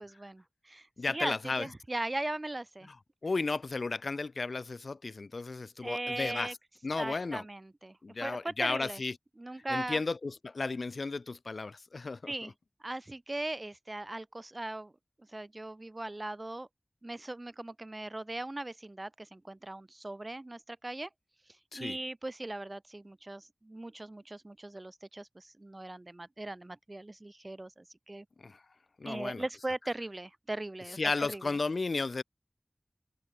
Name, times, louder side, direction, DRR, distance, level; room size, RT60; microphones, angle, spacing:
voice 1, 0.0-2.9 5.8-6.5 7.0-9.0 9.4-10.0 12.3-12.5 12.8-14.9 15.3-16.7 17.0-21.1 21.7-28.2 29.0-31.6, right 2 dB, 40° right, 1.0 m, -39 dB
voice 2, 1.0-1.7 3.2-6.6 6.8-7.4 8.0-9.1 9.7-12.3 21.7-22.0 28.4-28.6 29.0-29.4 31.0-32.2, left 3 dB, 85° left, 1.3 m, -34 dB
wide cardioid pair, 55°, 0 cm